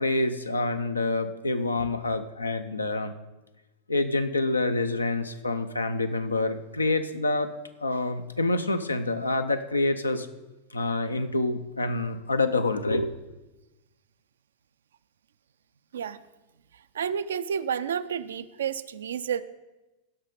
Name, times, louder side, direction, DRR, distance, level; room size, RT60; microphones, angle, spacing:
voice 1, 0.0-3.1 3.9-7.5 7.8-10.3 10.7-13.1, left 2 dB, 80° left, 9 dB, 0.6 m, -27 dB
voice 2, 17.0-19.4, right 8 dB, 65° right, 13 dB, 0.4 m, -30 dB
15.5 x 5.7 x 5.2 m, 1.1 s
figure-of-eight pair, 90°, 0 cm